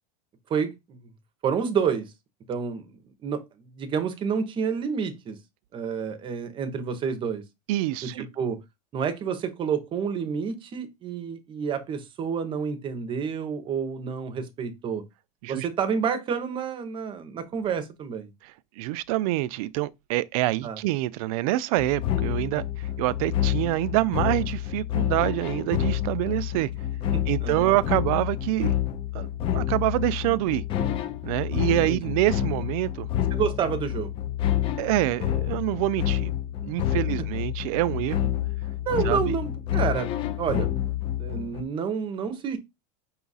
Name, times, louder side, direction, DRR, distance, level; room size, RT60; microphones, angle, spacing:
voice 1, 0.5-1.0 1.4-2.1 2.5-3.4 3.8-5.4 5.7-7.4 8.0-8.6 8.9-15.0 15.5-18.3 20.6-20.8 27.1-27.7 31.9-32.0 33.3-34.1 38.9-40.1 40.4-40.7 41.2-42.6, right 6 dB, 25° right, 0.7 m, -29 dB
voice 2, 7.7-8.3 15.4-15.7 18.4-26.7 27.3-28.7 29.1-30.6 31.2-33.1 34.8-36.4 36.6-38.3 39.0-39.4, right 17 dB, 60° right, 0.4 m, -26 dB
sound 1, 21.8-41.6, left 12 dB, 25° left, 0.3 m, -28 dB
5.6 x 2.4 x 4.0 m
supercardioid pair, 155°, 21 cm